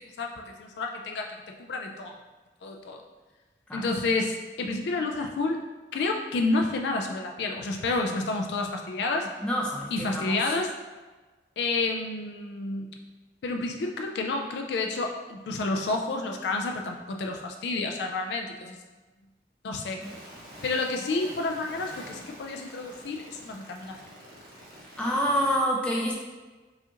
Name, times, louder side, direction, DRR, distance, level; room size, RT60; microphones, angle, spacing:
voice 1, 0.0-2.2 2.6-3.0 3.7-5.6 5.9-9.3 9.9-10.7 11.6-12.9 13.4-18.8 19.6-20.0 20.6-24.0, left 3 dB, 75° left, 3 dB, 0.3 m, -30 dB
voice 2, 9.4-10.4 25.0-26.1, equal, 5° left, -3 dB, 0.4 m, -27 dB
sound 1, 20.0-25.6, equal, 75° right, 1.3 m, -45 dB
4.8 x 2.5 x 2.8 m, 1.3 s
head